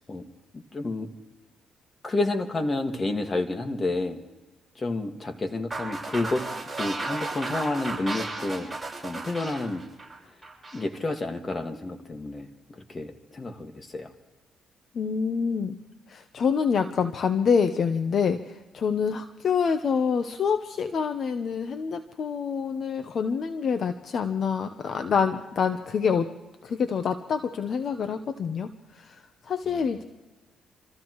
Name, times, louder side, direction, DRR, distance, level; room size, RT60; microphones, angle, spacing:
voice 1, 0.5-1.1 2.0-4.2 4.8-6.4 6.8-8.7 9.0-9.8 10.7-14.1 29.7-29.8, left 2 dB, 30° left, 5 dB, 1.9 m, -30 dB
sound 1, 5.7-10.9, right 2 dB, 10° right, 6.7 m, -34 dB
voice 2, 14.9-15.8 16.1-26.3 26.6-28.7 28.9-30.0, left 6 dB, 55° left, 8 dB, 0.9 m, -26 dB
28.5 x 14.5 x 3.2 m, 1.1 s
cardioid pair, 90°, 0 cm